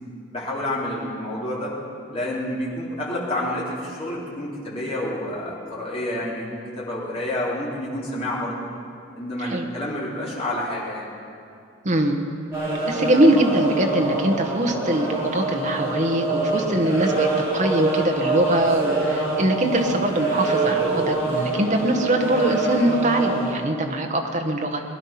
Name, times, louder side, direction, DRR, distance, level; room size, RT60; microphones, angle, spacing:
voice 1, 0.3-1.7 2.1-8.7 9.1-11.1, left 1 dB, 30° left, -5 dB, 3.1 m, -29 dB
voice 2, 11.8-12.2 12.9-24.8, right 1 dB, 35° right, 3 dB, 1.3 m, -22 dB
sound 1, 12.5-23.5, right 3 dB, 15° right, 4.6 m, -25 dB
19.5 x 11.0 x 5.8 m, 2.5 s
head